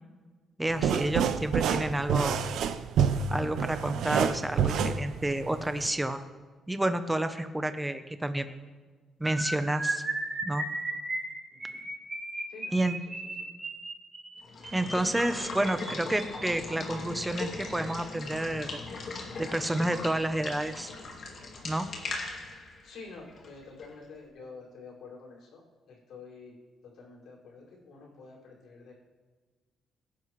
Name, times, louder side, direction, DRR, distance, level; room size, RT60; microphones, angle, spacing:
voice 1, 0.6-2.4 3.3-6.2 6.7-8.5 9.2-10.0 10.4-10.7 12.7-13.0 14.7-18.8 19.4-20.9 21.6-21.9, right 1 dB, 5° right, 9 dB, 0.7 m, -30 dB
sound 1, 0.7-5.9, right 7 dB, 80° right, 0.7 m, -28 dB
sound 2, 9.2-16.4 17.2-17.4 17.7-17.9 18.2-18.4, right 2 dB, 20° right, 3.0 m, -36 dB
Water / Water tap faucet / Liquid, 14.4-24.0, left 3 dB, 45° left, 2.3 m, -39 dB
voice 2, 22.8-26.5 26.8-28.9, left 4 dB, 70° left, -4 dB, 5.2 m, -48 dB
23.5 x 11.0 x 3.1 m, 1.4 s
cardioid pair, 180°, 0 cm